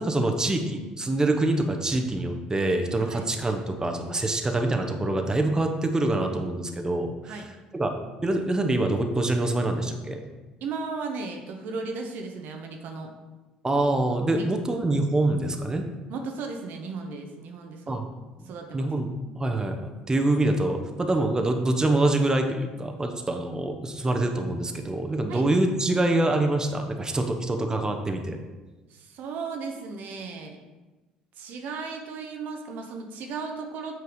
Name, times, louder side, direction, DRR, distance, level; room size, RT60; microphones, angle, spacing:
voice 1, 0.0-7.3 7.7-7.9 8.2-10.2 13.6-15.9 17.9-18.1 18.4-19.1 19.4-28.4, right 2 dB, 20° right, 4 dB, 1.0 m, -25 dB
voice 2, 10.6-13.1 14.3-14.5 16.1-18.0 18.4-18.9 25.3-25.4 28.9-30.6 31.4-34.0, right 4 dB, 55° right, 3 dB, 0.9 m, -35 dB
8.0 x 4.6 x 5.0 m, 1.2 s
figure-of-eight pair, 55°, 4 cm